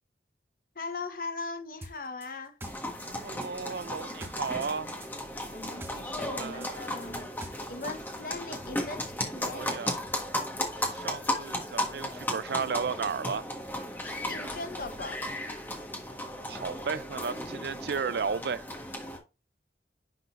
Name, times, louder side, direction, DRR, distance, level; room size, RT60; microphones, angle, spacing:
voice 1, 0.7-2.6 5.5-7.4 7.7-9.8 14.3-15.2, left 3 dB, 50° left, 1.0 m, -39 dB
sound 1, 1.8-4.7 5.0-7.9, right 1 dB, 15° right, 0.8 m, -46 dB
sound 2, 2.6-19.2, left 1 dB, 10° left, 1.4 m, -35 dB
voice 2, 3.1-4.9 6.2-7.0 8.5-8.6 9.5-10.0 10.8-13.5 16.5-18.6, right 6 dB, 65° right, 0.4 m, -34 dB
10.5 x 3.9 x 2.5 m
head